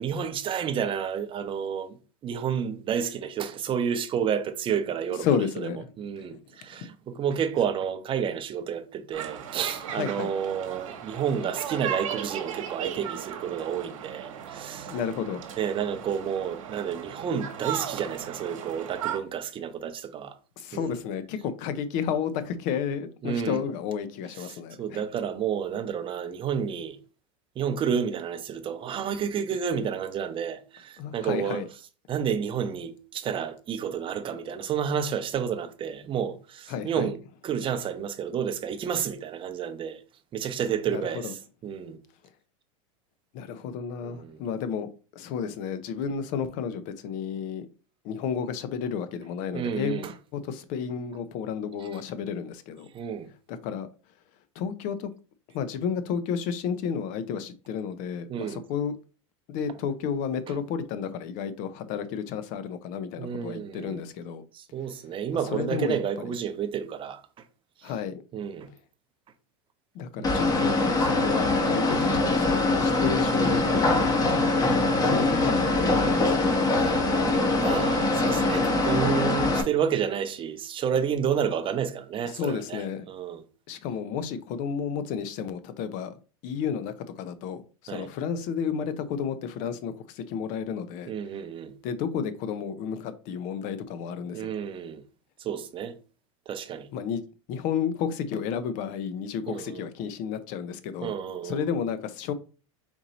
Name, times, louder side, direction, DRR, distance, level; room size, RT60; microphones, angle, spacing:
voice 1, 0.0-2.0 2.2-5.3 5.6-5.7 6.0-14.9 15.6-20.4 20.7-21.0 23.2-23.6 24.4-27.0 27.6-31.6 32.1-40.0 40.3-42.0 44.0-44.4 49.5-50.1 51.8-51.9 52.9-53.3 58.3-58.6 60.5-60.6 63.2-64.0 64.5-67.2 67.8-67.9 68.3-68.7 70.2-70.3 74.7-75.1 76.7-83.4 87.9-88.1 91.1-91.7 94.3-95.0 95.4-95.9 96.5-96.9 99.5-99.9 101.0-101.8, right 8 dB, 30° right, 0.7 m, -30 dB
voice 2, 5.2-5.9 6.2-6.3 6.8-6.9 9.9-10.3 14.9-15.4 20.6-25.0 31.0-31.7 36.7-37.1 40.9-41.3 43.3-47.7 48.0-52.9 53.5-53.9 54.6-55.1 55.5-58.9 59.5-64.4 65.5-66.0 67.8-68.2 69.9-74.4 75.0-76.7 82.3-83.0 83.7-86.1 86.4-91.1 91.8-94.5 96.9-97.2 97.5-101.1 101.4-102.3, left 7 dB, 50° left, 0.6 m, -32 dB
sound 1, 9.1-19.2, right 9 dB, 80° right, 1.1 m, -36 dB
sound 2, 70.2-79.6, left 2 dB, 20° left, 1.1 m, -23 dB
4.4 x 2.8 x 4.0 m
hypercardioid pair, 110°, 17 cm